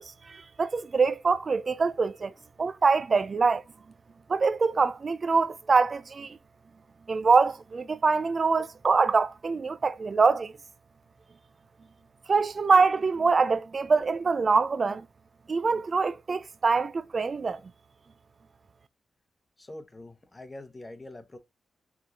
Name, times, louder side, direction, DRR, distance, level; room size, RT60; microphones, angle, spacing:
voice 1, 0.0-2.3 2.6-3.6 4.3-6.4 7.1-10.5 12.3-15.0 15.5-17.6, right 4 dB, 45° right, 0.5 m, -24 dB
voice 2, 19.6-21.4, left 1 dB, 25° left, 1.0 m, -44 dB
4.9 x 3.6 x 2.8 m
cardioid pair, 90°, 0 cm